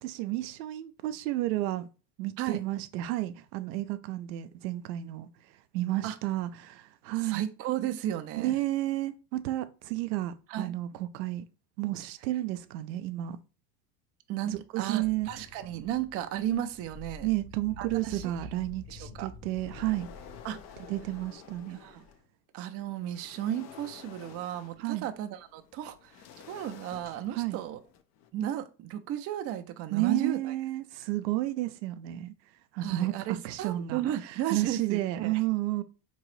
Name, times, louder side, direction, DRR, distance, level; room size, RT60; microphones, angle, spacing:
voice 1, 0.0-1.9 2.2-7.4 8.4-11.4 11.8-13.4 14.4-15.3 17.2-20.1 20.9-21.8 24.8-25.1 27.3-27.6 29.9-32.3 32.7-35.8, right 16 dB, 85° right, 0.6 m, -32 dB
voice 2, 7.2-8.6 10.5-10.7 14.3-17.3 17.8-18.3 18.9-19.3 20.4-20.8 21.7-22.0 22.5-27.8 28.3-30.4 32.8-35.4, right 11 dB, 35° right, 0.4 m, -34 dB
sound 1, 15.0-22.1, left 2 dB, 65° left, 1.0 m, -49 dB
sound 2, 17.9-18.9 19.3-22.3 22.7-28.3, left 9 dB, 35° left, 0.4 m, -52 dB
3.8 x 3.0 x 3.1 m
hypercardioid pair, 95°, 50 cm